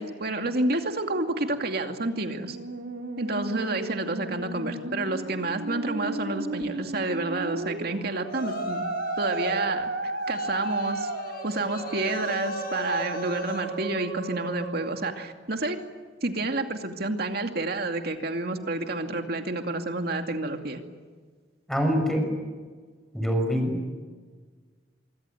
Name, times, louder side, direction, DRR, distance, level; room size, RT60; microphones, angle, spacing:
voice 1, 0.0-2.6 3.2-8.8 9.2-9.9 10.3-11.1 11.4-15.8 16.2-20.8, right 2 dB, 60° right, 5 dB, 2.5 m, -29 dB
Musical instrument, 2.3-15.3, right 2 dB, 90° right, 4.1 m, -34 dB
Yell, 8.3-9.6 10.3-13.7, left 2 dB, 55° left, 6.2 m, -38 dB
voice 2, 21.7-22.2 23.1-23.7, equal, ahead, 4 dB, 6.3 m, -24 dB
25.0 x 24.5 x 9.3 m, 1.5 s
head